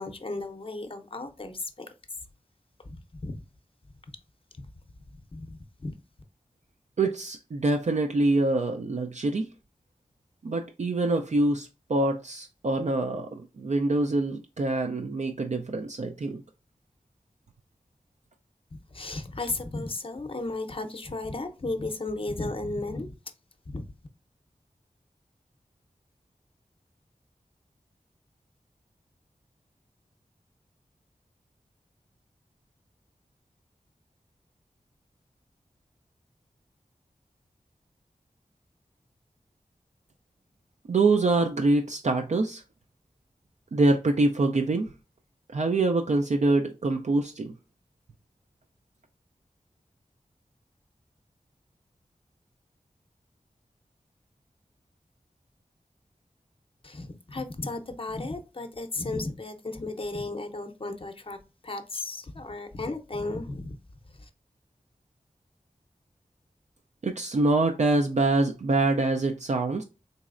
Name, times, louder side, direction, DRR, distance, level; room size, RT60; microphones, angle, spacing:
voice 1, 0.0-1.9 2.8-3.3 4.6-4.7 5.3-5.9 18.7-23.1 23.7-23.8 56.8-61.4 61.6-63.7 64.2-64.3, left 2 dB, 40° left, 0.6 m, -34 dB
voice 2, 7.0-9.5 10.4-16.4 40.9-42.6 43.7-44.9 45.5-47.5 67.0-69.8, right 2 dB, 55° right, 0.4 m, -25 dB
4.0 x 3.1 x 2.4 m
wide cardioid pair, 60°, 14 cm